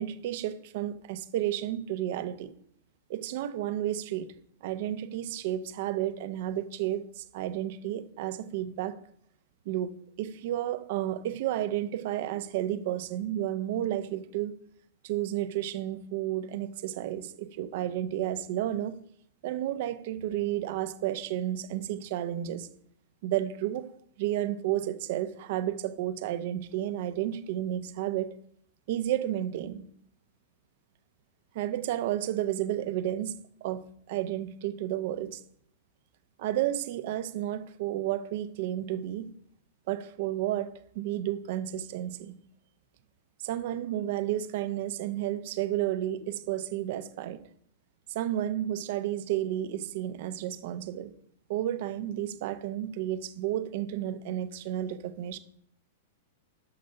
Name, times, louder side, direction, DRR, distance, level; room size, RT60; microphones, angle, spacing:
voice 1, 0.0-2.5 3.1-4.3 4.6-9.0 9.6-14.5 15.0-19.0 19.4-22.7 23.2-23.9 24.2-28.3 28.9-29.9 31.5-33.3 33.6-35.4 36.4-39.3 39.9-42.3 43.4-47.4 48.1-51.1 51.5-55.4, right 12 dB, 55° right, 0.9 m, -32 dB
11.0 x 6.4 x 5.7 m
hypercardioid pair, 105°, 0 cm